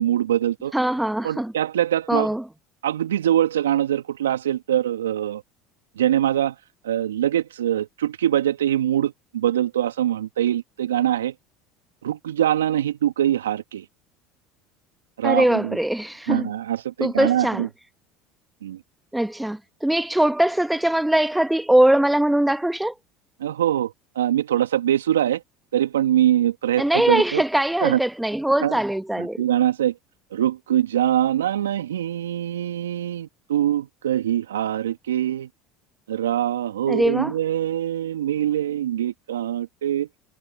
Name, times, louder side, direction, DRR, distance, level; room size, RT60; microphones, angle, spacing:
voice 1, 0.0-0.7 1.2-2.3 2.8-5.4 6.0-6.5 6.8-11.3 12.0-13.9 15.2-15.8 16.3-17.7 18.6-18.8 23.4-25.4 25.7-27.4 27.8-28.0 28.6-28.8 29.2-29.9 30.3-35.5 36.1-40.1, right 11 dB, 80° right, 2.0 m, -23 dB
voice 2, 0.7-1.5 2.1-2.4 15.2-16.5 17.0-17.7 19.1-22.9 26.8-29.4 36.9-37.3, right 1 dB, 5° right, 1.0 m, -21 dB
hypercardioid pair, 70°, 0 cm